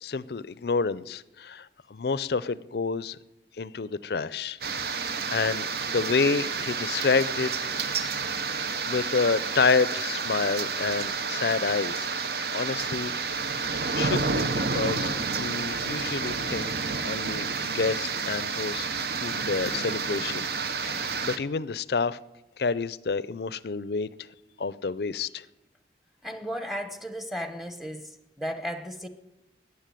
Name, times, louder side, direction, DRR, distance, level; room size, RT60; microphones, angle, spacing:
voice 1, 0.0-3.2 3.6-4.6 4.9-7.5 7.8-8.0 8.9-12.1 12.5-13.4 14.0-16.8 17.0-18.9 19.2-20.5 20.8-22.2 22.6-24.3 24.6-25.5, left 4 dB, 65° left, 0.5 m, -29 dB
sound 1, 4.6-21.4, right 4 dB, 60° right, 0.9 m, -30 dB
voice 2, 26.2-29.1, equal, ahead, 0.9 m, -35 dB
14.0 x 9.8 x 9.1 m
head